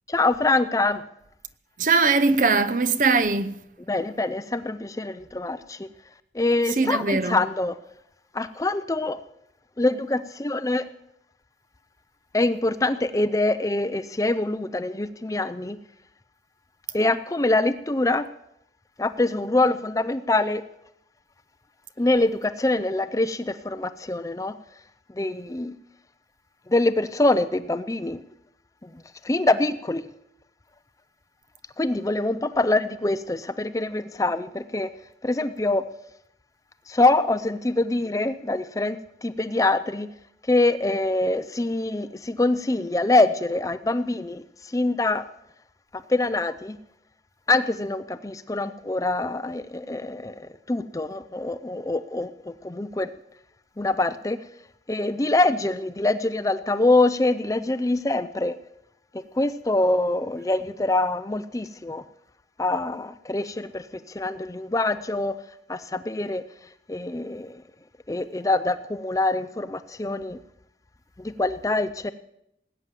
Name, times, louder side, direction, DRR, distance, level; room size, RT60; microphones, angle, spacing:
voice 1, 0.1-1.0 3.9-5.9 6.3-7.8 8.3-9.2 9.8-10.9 12.3-15.8 16.9-18.3 19.0-20.6 22.0-24.6 25.1-25.7 26.7-28.2 28.8-30.1 31.8-34.9 35.2-35.9 36.9-40.1 40.4-45.3 45.9-46.8 47.5-53.1 53.8-54.5 54.9-58.6 59.1-62.0 62.6-65.4 65.7-66.4 66.9-67.6 68.1-70.4 71.2-72.1, left 2 dB, 20° left, 0.5 m, -24 dB
voice 2, 1.8-3.6 6.8-7.4, right 4 dB, 45° right, 0.7 m, -21 dB
19.0 x 9.0 x 7.5 m
head